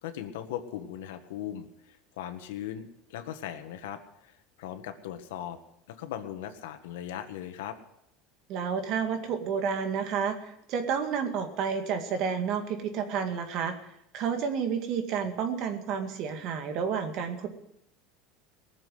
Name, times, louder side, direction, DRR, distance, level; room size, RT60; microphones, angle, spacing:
voice 1, 0.0-5.6 5.9-7.8, left 10 dB, 90° left, 7 dB, 1.6 m, -39 dB
voice 2, 8.5-13.8 14.1-17.5, right 6 dB, 50° right, 6 dB, 2.1 m, -30 dB
19.0 x 7.4 x 7.8 m, 0.79 s
supercardioid pair, 135°, 0 cm